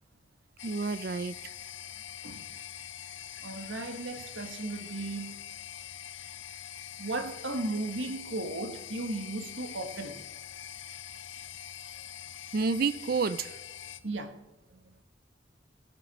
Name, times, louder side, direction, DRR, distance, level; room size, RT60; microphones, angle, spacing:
sound 1, 0.6-14.0, left 10 dB, 85° left, 0.7 m, -44 dB
voice 1, 0.6-1.5 12.5-13.6, right 4 dB, 50° right, 0.4 m, -30 dB
voice 2, 3.4-5.4 7.0-10.3 14.0-14.4, right 2 dB, 85° right, 1.4 m, -35 dB
17.5 x 9.4 x 5.3 m
head